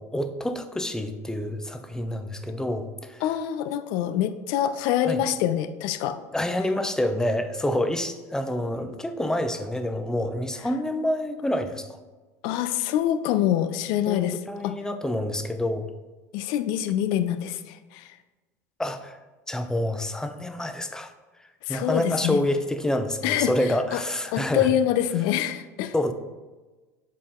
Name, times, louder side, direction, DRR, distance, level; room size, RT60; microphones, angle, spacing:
voice 1, 0.0-3.2 5.1-5.2 6.3-12.0 14.1-15.9 18.8-19.2 19.5-21.1 21.7-24.7 25.9-26.1, left 1 dB, 5° left, 8 dB, 0.6 m, -27 dB
voice 2, 3.2-6.2 12.4-14.4 14.6-14.7 16.3-18.1 21.7-22.4 23.2-23.5 23.9-24.0 24.3-25.9, left 11 dB, 65° left, 11 dB, 0.5 m, -25 dB
7.4 x 4.2 x 3.7 m, 1.2 s
hypercardioid pair, 95°, 8 cm